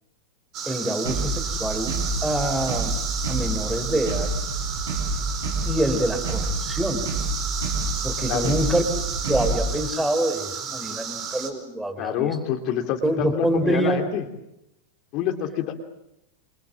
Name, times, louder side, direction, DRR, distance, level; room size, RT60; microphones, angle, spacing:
sound 1, 0.5-11.5, right 7 dB, 35° right, 4.9 m, -32 dB
voice 1, 0.7-2.0 2.2-3.0 3.3-4.3 5.6-7.1 8.0-8.8 9.2-12.4 13.0-14.0, right 1 dB, 5° right, 9 dB, 4.1 m, -26 dB
sound 2, 1.0-9.8, right 2 dB, 65° right, 6.8 m, -29 dB
voice 2, 12.0-14.2 15.1-15.7, left 9 dB, 40° left, 5 dB, 3.1 m, -27 dB
28.0 x 26.5 x 7.7 m, 0.85 s
figure-of-eight pair, 90°, 0 cm